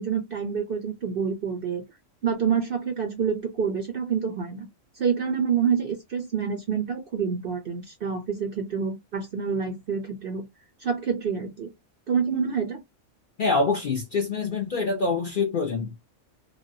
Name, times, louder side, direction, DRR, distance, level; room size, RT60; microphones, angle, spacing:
voice 1, 0.0-1.8 2.2-4.7 5.0-10.5 10.8-11.7 12.1-12.8, right 6 dB, 55° right, 0.6 m, -27 dB
voice 2, 13.4-16.0, left 4 dB, 55° left, 0.6 m, -25 dB
3.4 x 2.2 x 2.6 m
omnidirectional pair, 1.5 m